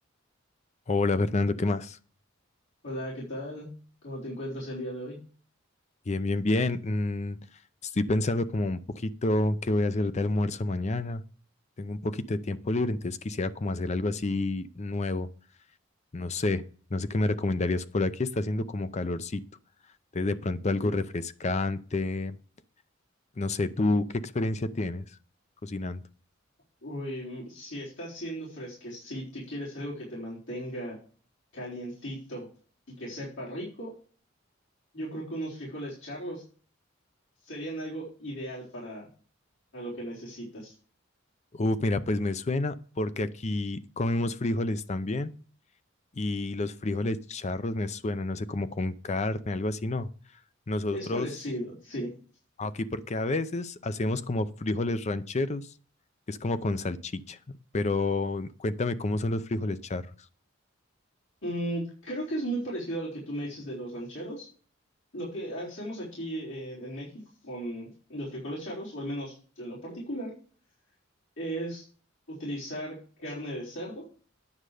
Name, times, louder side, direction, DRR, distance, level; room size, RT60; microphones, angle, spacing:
voice 1, 0.9-2.0 6.0-11.2 11.8-15.3 16.1-19.4 19.8-22.4 23.3-25.2 25.6-26.0 41.5-45.3 46.1-50.4 50.7-51.3 52.6-55.8 56.3-60.3, left 2 dB, 35° left, 13 dB, 0.6 m, -29 dB
voice 2, 2.8-3.7 4.0-5.2 20.8-20.9 26.8-31.0 31.5-32.5 32.9-33.9 34.9-36.4 37.4-39.1 39.7-40.7 50.9-52.1 61.4-64.5 65.1-67.1 67.4-70.3 71.4-71.8 72.3-74.0, equal, 85° left, -7 dB, 3.9 m, -36 dB
9.6 x 6.5 x 4.9 m, 0.42 s
head